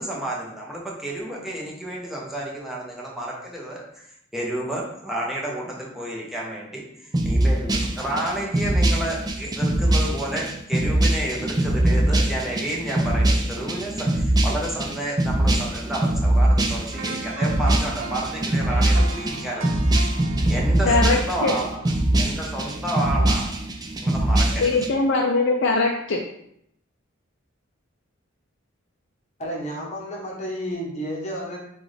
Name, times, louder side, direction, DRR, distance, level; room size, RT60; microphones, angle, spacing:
voice 1, 0.0-4.0 4.3-19.7 20.5-21.8 22.2-23.6 24.0-24.8, right 1 dB, ahead, -4 dB, 0.9 m, -31 dB
sound 1, 7.1-24.9, right 1 dB, 20° right, 0.4 m, -22 dB
sound 2, 16.9-22.9 23.3-23.5, right 4 dB, 85° right, 0.5 m, -38 dB
voice 2, 20.9-21.5 24.6-26.2, left 3 dB, 60° left, 0 dB, 0.4 m, -21 dB
voice 3, 29.4-31.6, equal, 35° left, -2 dB, 1.0 m, -31 dB
5.9 x 2.4 x 3.3 m, 0.74 s
head